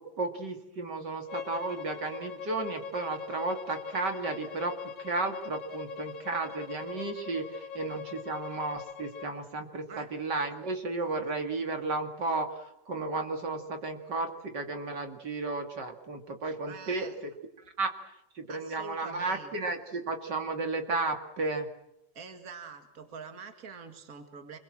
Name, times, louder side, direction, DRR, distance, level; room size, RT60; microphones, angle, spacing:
voice 1, 0.0-4.7 5.0-17.3 17.8-21.7, right 3 dB, 65° right, 4 dB, 2.9 m, -33 dB
Bowed string instrument, 1.3-9.3, left 7 dB, 70° left, 2.3 m, -42 dB
voice 2, 16.7-17.2 18.5-19.6 22.1-24.6, right 5 dB, 50° right, 6 dB, 2.5 m, -45 dB
28.0 x 22.5 x 7.6 m, 0.85 s
omnidirectional pair, 2.0 m